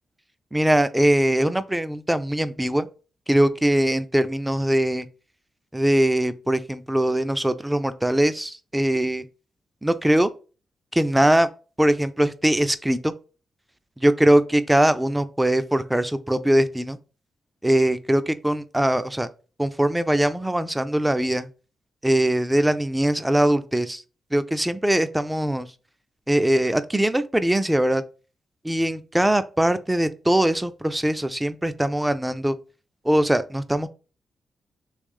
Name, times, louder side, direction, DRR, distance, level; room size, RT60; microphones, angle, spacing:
voice 1, 0.5-2.9 3.3-5.1 5.7-9.3 9.8-10.3 10.9-11.5 11.8-13.1 14.0-17.0 17.6-19.3 19.6-21.5 22.0-24.0 24.3-25.7 26.3-28.0 28.6-32.6 33.0-33.9, right 1 dB, 10° right, 0.4 m, -21 dB
3.2 x 3.1 x 3.5 m
cardioid pair, 70°, 0 cm